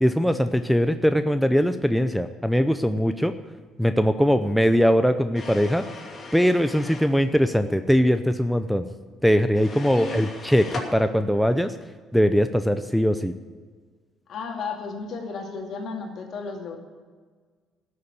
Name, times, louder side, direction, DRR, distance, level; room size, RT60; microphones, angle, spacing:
voice 1, 0.0-3.3 3.8-5.8 6.3-8.8 9.2-11.8 12.1-13.3, equal, ahead, 8 dB, 0.5 m, -21 dB
sound 1, 5.4-7.1 9.6-10.9, left 3 dB, 35° left, 2.7 m, -38 dB
voice 2, 9.9-10.3 14.3-16.8, left 4 dB, 60° left, 2 dB, 2.4 m, -34 dB
12.5 x 6.9 x 9.3 m, 1.5 s
cardioid pair, 115°, 0 cm